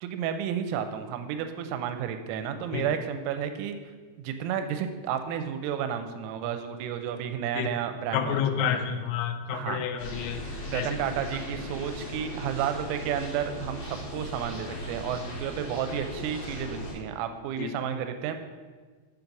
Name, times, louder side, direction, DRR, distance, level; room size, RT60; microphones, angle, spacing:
voice 1, 0.0-3.8 4.2-8.8 9.5-9.8 10.7-18.4, right 8 dB, 85° right, 8 dB, 3.1 m, -32 dB
voice 2, 8.1-10.9 17.6-17.7, left 9 dB, 85° left, 7 dB, 3.1 m, -30 dB
sound 1, 10.0-16.9, equal, 60° left, 4.3 m, -38 dB
7.6 x 4.0 x 5.8 m, 1.4 s
omnidirectional pair, 5.7 m